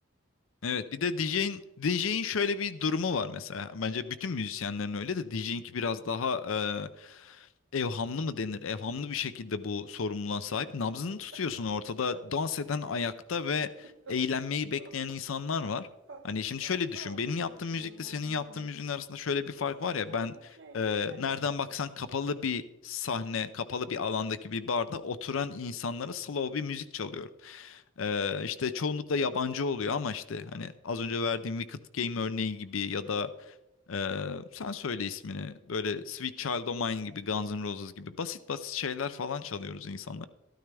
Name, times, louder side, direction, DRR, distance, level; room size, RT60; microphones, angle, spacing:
voice 1, 0.6-15.9 16.2-33.5 33.9-40.3, left 5 dB, 80° left, 13 dB, 0.6 m, -32 dB
sound 1, 10.4-11.8 12.1-12.3 12.6-14.5 14.8-16.3 16.6-18.8 19.6-21.6, right 3 dB, 65° right, 1.1 m, -52 dB
13.0 x 13.0 x 3.4 m, 0.92 s
head